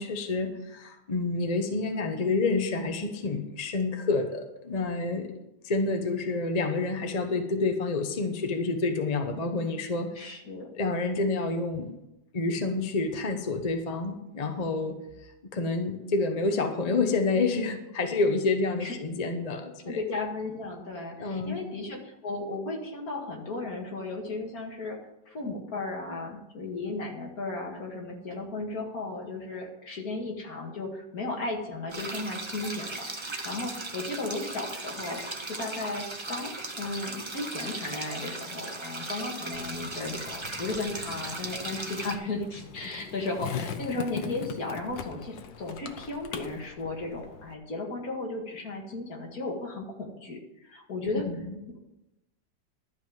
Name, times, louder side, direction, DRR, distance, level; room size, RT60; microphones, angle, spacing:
voice 1, 0.0-5.3 5.6-10.1 10.8-11.9 12.3-20.0 21.2-21.6 51.3-51.6, left 3 dB, 30° left, 5 dB, 0.7 m, -28 dB
voice 2, 10.2-10.7 18.8-18.9 19.9-25.0 25.3-35.2 35.5-51.3, left 3 dB, 55° left, 0 dB, 2.4 m, -35 dB
sound 1, 31.9-42.1, right 2 dB, 20° right, 0.8 m, -37 dB
Skateboard, 39.5-47.5, left 7 dB, 85° left, 1.5 m, -41 dB
12.0 x 5.4 x 7.8 m, 0.90 s
omnidirectional pair, 1.9 m